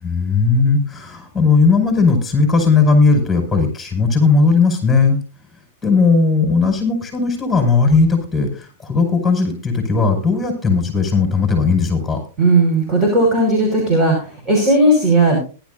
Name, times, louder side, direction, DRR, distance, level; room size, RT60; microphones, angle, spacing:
voice 1, 0.0-5.2 5.8-12.2, left 4 dB, 10° left, 3 dB, 5.6 m, -16 dB
voice 2, 12.4-15.4, right 2 dB, 25° right, 1 dB, 5.5 m, -15 dB
19.0 x 12.0 x 2.7 m, 0.35 s
hypercardioid pair, 120°, 0 cm